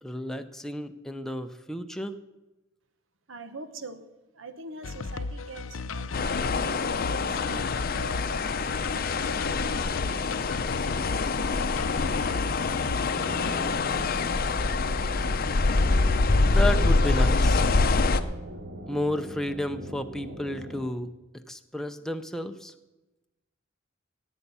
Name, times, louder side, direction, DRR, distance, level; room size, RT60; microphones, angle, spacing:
voice 1, 0.0-2.1 16.4-17.6 18.9-21.1 21.5-22.7, left 1 dB, ahead, 6 dB, 0.6 m, -32 dB
voice 2, 3.3-4.0 4.3-10.5, right 2 dB, 75° right, 11 dB, 1.1 m, -44 dB
sound 1, 4.8-13.5, left 4 dB, 90° left, 0.6 m, -36 dB
sound 2, 6.1-18.2, left 3 dB, 50° left, 0.6 m, -25 dB
sound 3, 13.1-20.9, equal, 55° right, 1.6 m, -40 dB
17.5 x 8.3 x 5.5 m, 1.0 s
head